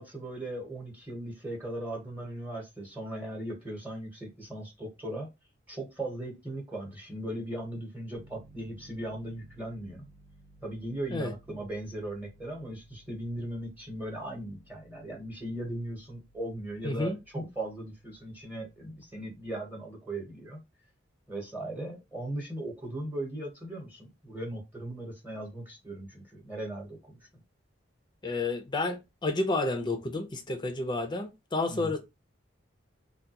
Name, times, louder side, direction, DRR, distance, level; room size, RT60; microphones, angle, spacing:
voice 1, 0.0-5.3 5.7-10.0 10.6-20.6 21.3-27.2 31.7-31.9, right 1 dB, 10° right, 1.0 m, -38 dB
Piano, 8.1-19.5, right 1 dB, 30° right, 0.5 m, -59 dB
voice 2, 16.8-17.2 28.2-32.0, left 2 dB, 25° left, 0.5 m, -30 dB
3.4 x 2.2 x 2.8 m
head